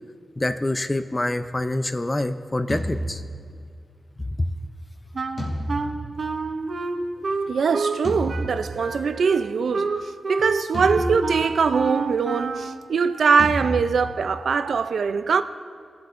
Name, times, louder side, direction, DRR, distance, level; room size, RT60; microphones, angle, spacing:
voice 1, 0.4-3.2, left 1 dB, 20° left, 0.5 m, -26 dB
sound 1, 2.7-3.9 5.4-6.9 8.0-9.2 10.7-12.0 13.4-14.5, equal, 50° left, 2.9 m, -32 dB
Wind instrument woodwind instrument, 5.1-8.0 8.3-12.8, right 3 dB, 60° right, 0.7 m, -29 dB
voice 2, 7.5-9.9 10.3-15.4, right 5 dB, 85° right, 0.4 m, -22 dB
20.0 x 7.8 x 2.5 m
wide cardioid pair, 110°, 0 cm